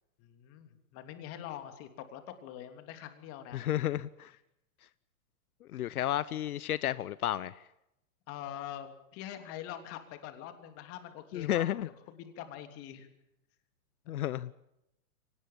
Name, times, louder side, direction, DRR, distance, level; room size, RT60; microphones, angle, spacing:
voice 1, 0.2-3.6 6.0-6.1 8.3-11.8 12.1-13.1, left 11 dB, 30° left, 3.2 m, -44 dB
voice 2, 3.5-4.3 5.6-7.6 11.3-11.9 14.1-14.5, left 12 dB, 80° left, 0.9 m, -32 dB
24.0 x 19.0 x 8.6 m
hypercardioid pair, 145°, 43 cm